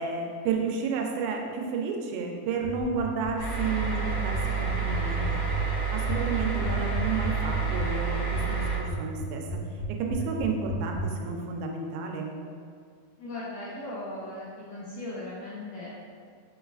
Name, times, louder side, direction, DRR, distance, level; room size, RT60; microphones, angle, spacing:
voice 1, 0.0-5.4 5.9-9.6 10.0-12.4, right 4 dB, 85° right, 1 dB, 2.4 m, -31 dB
sound 1, 2.6-11.0, left 2 dB, 60° right, 2.5 m, -33 dB
sound 2, 3.4-8.8, right 6 dB, 55° left, 1.9 m, -29 dB
voice 2, 13.2-15.9, left 1 dB, 80° left, -8 dB, 1.8 m, -38 dB
5.7 x 3.9 x 2.4 m, 2.1 s
omnidirectional pair, 4.3 m